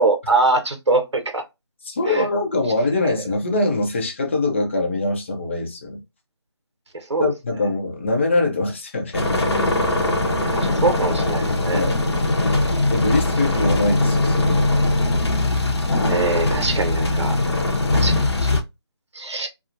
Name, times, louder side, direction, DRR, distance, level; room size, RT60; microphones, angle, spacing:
voice 1, 0.0-1.4 2.1-2.2 7.1-7.3 10.6-11.8 16.1-17.4 17.9-18.5 19.1-19.5, right 3 dB, 85° right, 0.6 m, -22 dB
voice 2, 1.8-6.0 7.2-9.5 11.7-12.0 12.8-14.7 16.8-16.9, left 2 dB, 25° left, 0.5 m, -23 dB
sound 1, 9.1-18.6, left 2 dB, 70° left, 0.7 m, -20 dB
2.9 x 2.0 x 2.4 m
figure-of-eight pair, 160°, 14 cm